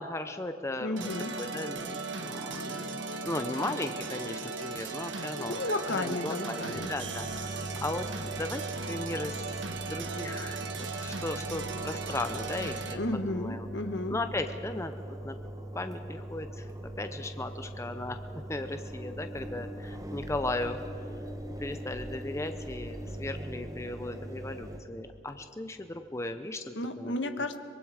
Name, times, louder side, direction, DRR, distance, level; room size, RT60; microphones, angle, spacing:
voice 1, 0.0-1.1 1.4-5.6 6.0-8.6 8.9-9.4 9.9-10.6 11.0-13.0 13.3-13.7 14.1-14.9 15.2-15.4 15.7-16.7 17.0-18.2 18.5-20.8 21.6-27.5, left 2 dB, 15° left, 8 dB, 0.6 m, -36 dB
voice 2, 0.8-1.3 5.4-6.9 13.0-14.2 26.7-27.6, left 2 dB, 65° left, 8 dB, 1.2 m, -33 dB
sound 1, 1.0-12.9, right 4 dB, 70° right, 1.4 m, -37 dB
Engine, 6.7-24.8, right 1 dB, 20° right, 1.1 m, -41 dB
24.0 x 22.0 x 5.0 m, 2.6 s
head